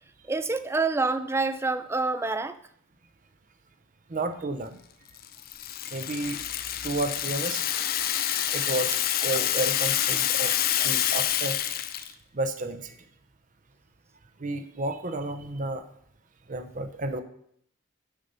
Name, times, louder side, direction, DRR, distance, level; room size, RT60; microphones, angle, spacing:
voice 1, 0.3-2.6, right 3 dB, 10° right, 12 dB, 0.3 m, -27 dB
voice 2, 4.1-4.8 5.9-7.7 8.5-9.0 9.2-11.6 11.9-13.0 14.4-15.8 16.5-17.2, right 2 dB, 40° right, 9 dB, 0.7 m, -32 dB
Rattle (instrument), 5.2-12.1, left 11 dB, 45° left, 0.5 m, -27 dB
7.0 x 5.4 x 6.7 m, 0.68 s
head